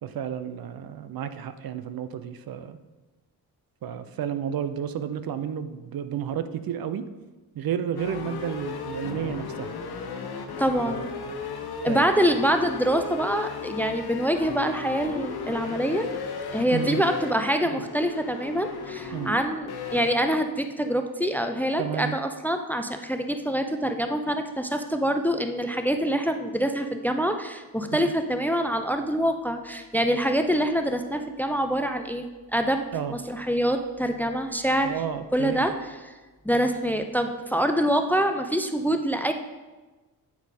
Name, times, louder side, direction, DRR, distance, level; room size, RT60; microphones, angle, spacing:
voice 1, 0.0-2.8 3.8-7.1 7.5-9.7 10.8-11.4 11.9-12.1 14.5-14.6 16.7-17.1 17.7-17.8 19.1-19.4 21.8-22.2 27.9-28.1 32.9-33.2 34.8-35.7, right 8 dB, 65° right, 11 dB, 0.6 m, -32 dB
sound 1, 8.0-20.1, left 5 dB, 75° left, 1.0 m, -36 dB
voice 2, 10.6-11.1 11.8-16.1 16.5-32.2 32.5-32.8 33.1-34.9 35.3-35.7 36.0-36.1 36.4-39.3, equal, 5° left, 7 dB, 0.5 m, -25 dB
8.3 x 4.7 x 4.1 m, 1.2 s
cardioid pair, 80°, 38 cm